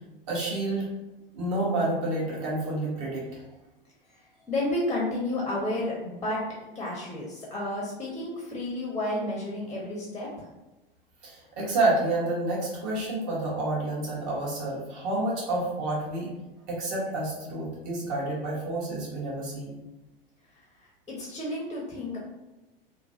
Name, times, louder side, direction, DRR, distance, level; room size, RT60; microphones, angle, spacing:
voice 1, 0.3-0.9 1.3-3.4 11.2-16.3 16.7-19.8, right 2 dB, 50° right, -5 dB, 1.3 m, -29 dB
voice 2, 4.1-6.4 6.7-10.5 20.5-22.2, left 1 dB, 10° left, -3 dB, 0.6 m, -32 dB
3.0 x 2.3 x 2.7 m, 1.0 s
figure-of-eight pair, 85°, 29 cm